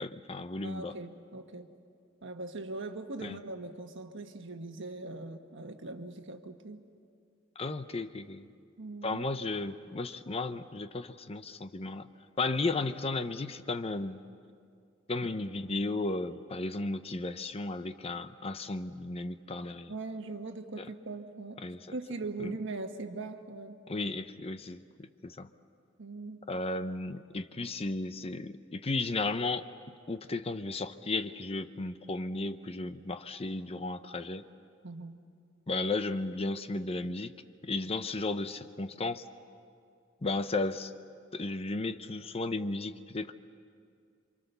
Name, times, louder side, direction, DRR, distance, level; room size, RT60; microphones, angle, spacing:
voice 1, 0.0-0.9 3.2-3.4 7.6-8.5 9.0-12.1 12.4-14.2 15.1-19.9 20.8-20.9 21.6-21.8 22.4-22.5 23.9-25.5 26.5-29.7 30.1-34.4 35.7-37.3 37.6-39.3 40.2-40.9 41.3-43.3, left 3 dB, 30° left, 11 dB, 0.7 m, -34 dB
voice 2, 0.6-1.8 2.2-6.8 8.8-9.2 19.9-21.6 21.9-23.8 26.0-26.5 34.8-35.2, right 3 dB, 65° right, 6 dB, 1.4 m, -41 dB
27.5 x 25.0 x 6.8 m, 2.2 s
head